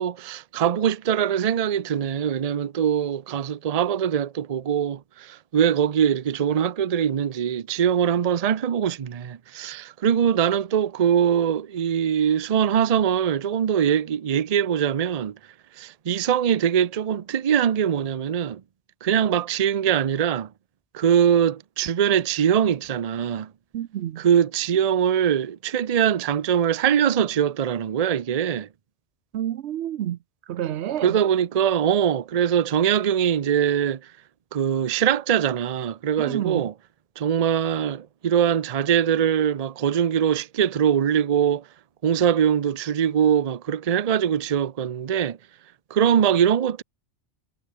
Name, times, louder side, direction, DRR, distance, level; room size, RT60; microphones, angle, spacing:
voice 1, 0.0-15.3 15.8-18.6 19.0-20.5 20.9-23.5 24.2-28.7 31.0-34.0 34.5-36.7 37.2-41.6 42.0-45.4 45.9-46.8, right 8 dB, 40° right, 0.6 m, -22 dB
voice 2, 23.7-24.2 29.3-30.2 30.5-31.2 36.2-36.7, right 11 dB, 80° right, 0.9 m, -29 dB
omnidirectional pair, 1.1 m